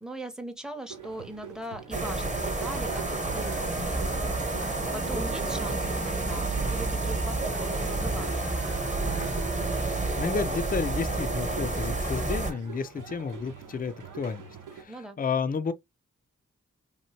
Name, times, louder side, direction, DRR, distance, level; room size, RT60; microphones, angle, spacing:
voice 1, 0.0-8.4 14.9-15.2, right 1 dB, ahead, 0.8 m, -40 dB
sound 1, 0.9-14.8, right 7 dB, 85° right, 0.8 m, -44 dB
sound 2, 1.9-12.5, right 2 dB, 25° right, 1.0 m, -29 dB
sound 3, 2.5-9.8, right 3 dB, 50° right, 0.7 m, -44 dB
voice 2, 10.2-14.5 14.8-15.7, left 5 dB, 30° left, 0.4 m, -31 dB
2.8 x 2.6 x 2.8 m
cardioid pair, 45°, 30 cm